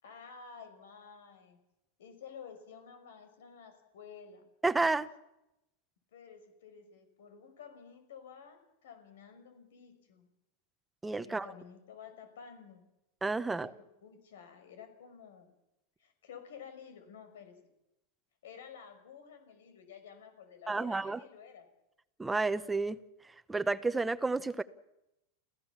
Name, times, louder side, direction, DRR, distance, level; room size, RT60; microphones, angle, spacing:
voice 1, 0.0-1.6 2.0-4.5 6.1-10.3 11.2-12.8 13.5-15.5 16.0-17.5 18.4-21.7, left 7 dB, 90° left, 9 dB, 5.5 m, -52 dB
voice 2, 4.6-5.1 11.0-11.5 13.2-13.7 20.7-21.2 22.2-23.0 23.5-24.6, right 3 dB, 10° right, 13 dB, 0.8 m, -30 dB
28.5 x 16.0 x 7.3 m, 0.90 s
supercardioid pair, 145°, 0 cm